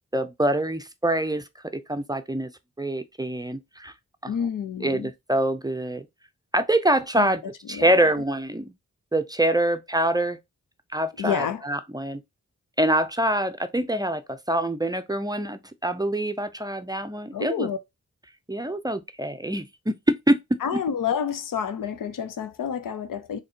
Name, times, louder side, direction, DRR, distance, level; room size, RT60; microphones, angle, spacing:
voice 1, 0.1-1.4 1.7-2.5 2.8-3.9 4.2-4.3 4.8-6.1 6.5-7.4 7.7-8.7 9.1-10.4 10.9-12.2 12.8-17.7 18.5-20.4 20.7-20.8, right 1 dB, 10° right, 0.5 m, -25 dB
voice 2, 4.3-5.1 7.2-7.4 7.7-8.0 11.2-11.6 17.3-17.8 20.6-23.4, left 8 dB, 80° left, 0.6 m, -29 dB
4.1 x 2.9 x 2.7 m
cardioid pair, 45°, 32 cm